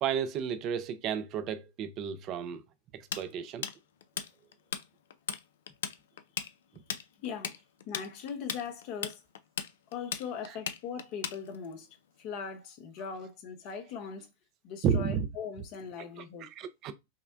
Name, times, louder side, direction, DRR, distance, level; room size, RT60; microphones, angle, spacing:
voice 1, 0.0-2.6 2.9-3.7 6.7-6.8 10.5-10.6 13.0-13.1 14.8-15.3 16.2-16.9, right 7 dB, 40° right, 0.5 m, -32 dB
Tools, 3.1-4.8 5.1-5.4 5.7-11.7, left 8 dB, 70° left, 0.4 m, -36 dB
voice 2, 7.2-7.6 7.9-9.2 9.9-11.9 12.2-14.3 14.6-16.5, left 6 dB, 50° left, 0.8 m, -40 dB
5.6 x 2.2 x 2.4 m
hypercardioid pair, 100°, 0 cm